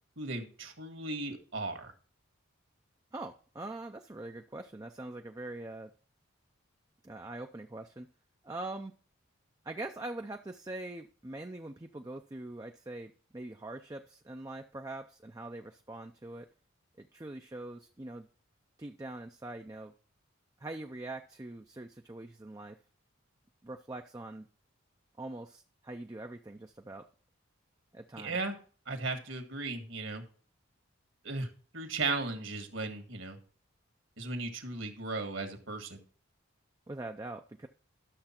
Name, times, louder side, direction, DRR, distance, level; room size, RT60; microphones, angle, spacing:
voice 1, 0.2-1.9 28.2-28.5 28.9-30.2 31.2-31.5 31.7-33.4 34.2-36.0, right 3 dB, 65° right, 6 dB, 1.7 m, -36 dB
voice 2, 3.1-5.9 7.0-8.1 8.4-8.9 9.6-16.5 17.0-18.3 18.8-19.9 20.6-22.8 23.6-24.5 25.2-27.0 27.9-28.4 36.9-37.7, right 2 dB, 15° right, 4 dB, 0.4 m, -43 dB
12.0 x 6.7 x 4.4 m, 0.41 s
head